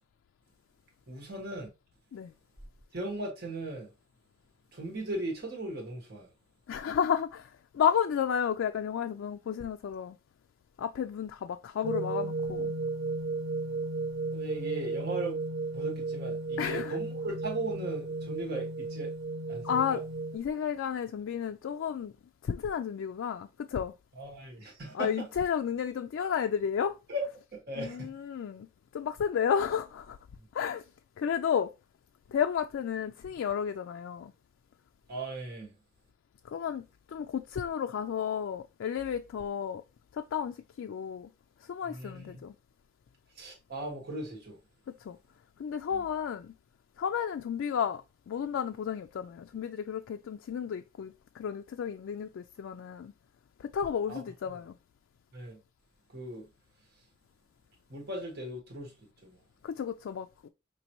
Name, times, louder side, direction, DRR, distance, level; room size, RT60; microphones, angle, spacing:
voice 1, 1.1-1.7 2.9-3.9 4.7-6.3 14.3-15.3 15.7-19.1 19.5-20.0 24.1-25.3 27.1-27.3 27.5-28.1 35.1-35.8 41.9-42.4 43.3-44.6 45.9-46.0 54.1-54.2 54.5-54.6 55.3-55.6 56.1-56.5 57.9-59.4, right 1 dB, 55° right, 1.5 m, -38 dB
voice 2, 6.7-10.2 10.8-12.7 16.6-17.0 19.6-20.0 20.3-22.1 22.4-23.9 24.9-27.0 27.8-28.7 28.9-30.2 30.5-30.9 31.2-31.7 32.3-34.3 36.4-39.8 40.1-41.3 41.6-42.5 44.9-45.2 45.6-46.5 47.0-53.1 53.6-54.8 59.6-60.5, left 8 dB, 75° left, 0.3 m, -32 dB
sound 1, 11.8-20.4, right 3 dB, 80° right, 1.0 m, -34 dB
5.3 x 3.0 x 3.0 m
head